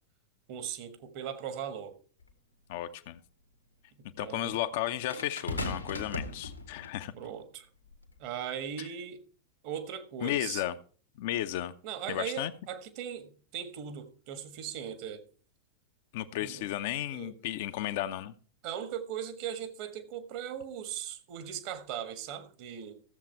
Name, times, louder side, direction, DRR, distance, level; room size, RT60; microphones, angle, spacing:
voice 1, 0.5-2.0 4.2-4.6 7.1-7.7 8.2-9.2 9.6-10.6 11.8-15.2 16.4-16.6 17.1-17.3 18.6-23.0, right 9 dB, 45° right, 1.5 m, -39 dB
sound 1, 2.2-2.3 5.1-7.0 7.9-8.1, left 2 dB, 80° left, 1.6 m, -37 dB
voice 2, 2.7-3.2 4.2-7.1 8.8-8.9 10.2-10.8 11.2-11.7 12.1-12.5 16.1-18.3, left 13 dB, 50° left, 0.7 m, -34 dB
14.5 x 7.4 x 4.5 m
figure-of-eight pair, 90°, 0 cm